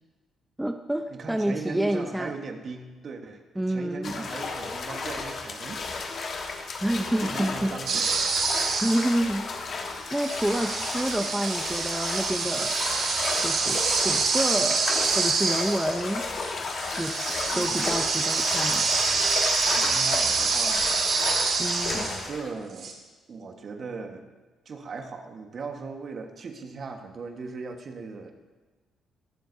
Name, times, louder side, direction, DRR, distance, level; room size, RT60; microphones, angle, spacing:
voice 1, 0.6-2.3 3.6-4.3 6.8-7.7 8.8-9.5 10.1-12.7 13.4-14.8 15.2-16.3 17.0-17.2 17.5-18.9 21.6-22.1, right 1 dB, 5° right, 5 dB, 0.6 m, -28 dB
voice 2, 1.1-5.8 7.2-8.4 17.5-18.0 19.6-20.9 21.9-23.0 23.3-24.3 24.6-28.3, right 4 dB, 50° right, 4 dB, 1.4 m, -38 dB
sound 1, 4.0-22.5, left 4 dB, 55° left, 1.4 m, -33 dB
sound 2, 7.9-9.2 10.0-22.3 22.8-22.9, right 5 dB, 65° right, 1.8 m, -27 dB
21.0 x 7.6 x 2.7 m, 1.3 s
cardioid pair, 90°, 0 cm